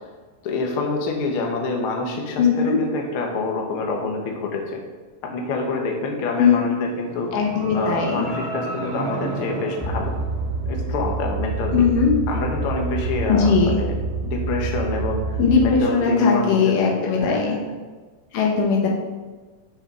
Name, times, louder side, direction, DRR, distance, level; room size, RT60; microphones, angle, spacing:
voice 1, 0.4-4.8 5.2-7.3 7.7-10.1 10.7-11.8 12.3-13.9 14.2-17.6, left 3 dB, 60° left, 1 dB, 1.5 m, -27 dB
voice 2, 2.4-2.8 6.4-6.6 7.3-8.3 11.7-12.1 13.3-13.8 15.4-17.6 18.3-18.9, left 5 dB, 80° left, -1 dB, 2.8 m, -19 dB
sound 1, 6.9-11.1, right 3 dB, 85° right, 1.1 m, -32 dB
sound 2, 9.8-15.8, right 3 dB, 70° right, 0.6 m, -27 dB
6.5 x 5.9 x 4.8 m, 1.3 s
omnidirectional pair, 3.7 m